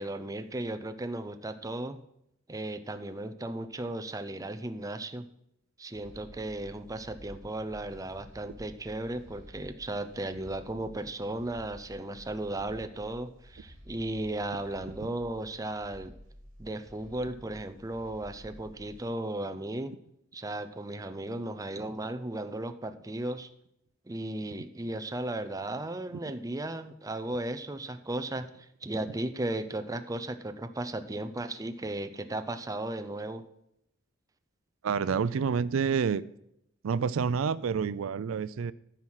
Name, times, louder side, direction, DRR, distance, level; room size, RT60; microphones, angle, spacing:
voice 1, 0.0-2.0 2.5-5.3 5.8-16.1 16.6-19.9 20.3-23.5 24.1-28.5 28.8-33.4, right 1 dB, 15° right, 9 dB, 0.6 m, -35 dB
sound 1, 5.9-19.1, equal, 70° right, 2.7 m, -52 dB
voice 2, 34.8-36.2 36.8-38.7, right 6 dB, 85° right, 17 dB, 0.4 m, -28 dB
14.0 x 6.1 x 5.7 m, 0.78 s
head